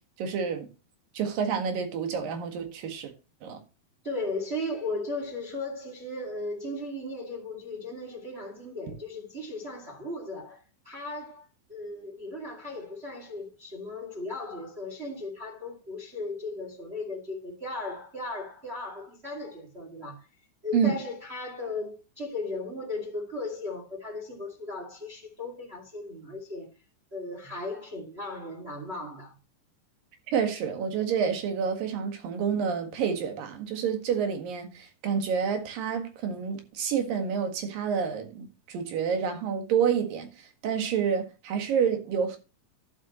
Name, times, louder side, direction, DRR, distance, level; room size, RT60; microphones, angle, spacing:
voice 1, 0.2-0.7 1.2-3.1 3.4-3.6 20.7-21.0 30.3-42.4, right 7 dB, 85° right, 3.6 m, -28 dB
voice 2, 4.0-20.3 20.6-26.7 27.1-29.3, left 2 dB, 20° right, 2.4 m, -36 dB
12.0 x 7.9 x 3.1 m
omnidirectional pair, 3.9 m